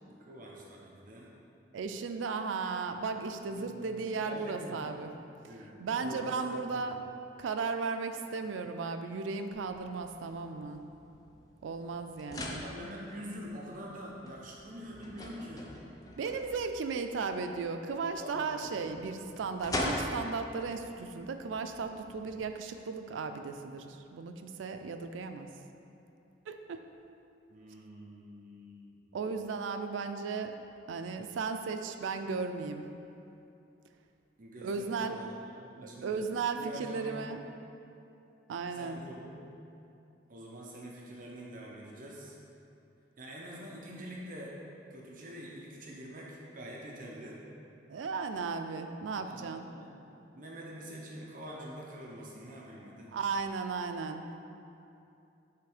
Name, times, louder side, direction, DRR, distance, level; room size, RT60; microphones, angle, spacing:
voice 1, 0.1-1.3 3.5-4.8 5.5-6.9 12.5-15.7 18.2-18.8 19.2-19.3 27.5-29.1 34.4-35.3 35.8-36.2 36.6-37.3 38.7-39.5 40.3-42.4 43.2-44.5 44.9-47.4 49.2-49.9 50.3-53.1, equal, 45° right, -3 dB, 0.7 m, -45 dB
voice 2, 1.7-5.1 5.8-7.1 7.4-10.8 11.6-12.6 16.2-25.5 26.5-26.8 29.1-30.6 30.9-32.8 34.6-35.2 35.8-37.4 38.5-39.0 47.9-49.7 53.1-54.4, right 4 dB, 85° right, 7 dB, 0.4 m, -35 dB
sound 1, 9.5-22.4, left 1 dB, 20° left, 0.5 m, -43 dB
5.7 x 3.5 x 4.9 m, 2.7 s
head